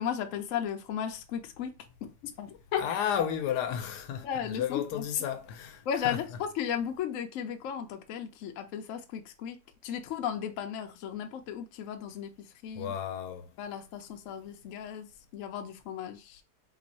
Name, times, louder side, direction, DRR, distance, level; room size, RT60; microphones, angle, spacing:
voice 1, 0.0-1.7 2.0-2.8 4.2-5.1 5.9-9.6 9.8-12.3 12.6-12.9 13.6-16.4, left 8 dB, 65° left, 0.8 m, -35 dB
voice 2, 2.8-6.4 12.8-13.5, left 9 dB, 85° left, 1.2 m, -33 dB
3.0 x 2.6 x 4.0 m
omnidirectional pair, 1.8 m